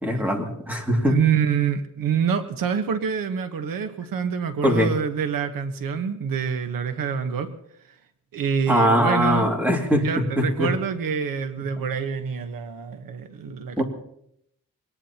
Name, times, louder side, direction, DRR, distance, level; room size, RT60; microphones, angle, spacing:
voice 1, 0.0-1.1 4.6-4.9 8.7-10.1 10.4-10.7 13.8-13.9, equal, 5° right, 1 dB, 2.3 m, -21 dB
voice 2, 1.1-7.5 7.8-7.9 8.3-9.5 10.0-13.8, right 7 dB, 80° right, 8 dB, 1.3 m, -26 dB
23.5 x 18.5 x 2.9 m, 0.73 s
wide cardioid pair, 165°, 33 cm